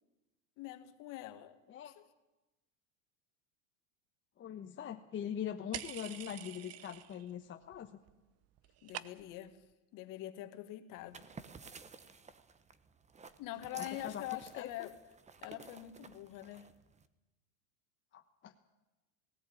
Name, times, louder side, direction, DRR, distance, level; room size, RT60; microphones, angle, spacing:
voice 1, 0.6-1.6 1.9-2.0 8.8-9.6 9.9-11.3 13.4-14.9 15.4-16.7, left 14 dB, 50° left, 2.0 m, -44 dB
voice 2, 4.4-8.0 13.8-14.7 18.1-18.5, left 9 dB, 30° left, 1.3 m, -42 dB
sound 1, 5.7-7.3 7.6-8.2 8.4-9.5, right 13 dB, 40° right, 0.9 m, -46 dB
sound 2, 11.0-17.1, right 5 dB, 15° right, 1.1 m, -54 dB
18.5 x 17.0 x 8.8 m
supercardioid pair, 120°, 39 cm